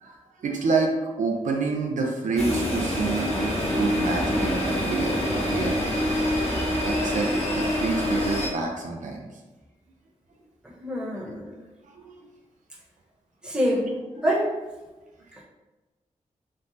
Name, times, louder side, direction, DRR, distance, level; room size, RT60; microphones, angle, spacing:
voice 1, 0.0-5.8 6.5-9.3 11.1-11.2 11.9-12.1 13.6-13.9, right 4 dB, 75° right, 1 dB, 0.4 m, -28 dB
sound 1, 2.4-8.5, left 1 dB, 50° left, 0.9 m, -25 dB
voice 2, 10.8-11.6 13.4-13.9 14.2-14.5, equal, 5° right, -5 dB, 0.9 m, -25 dB
3.1 x 2.0 x 2.6 m, 1.2 s
cardioid pair, 55°, 13 cm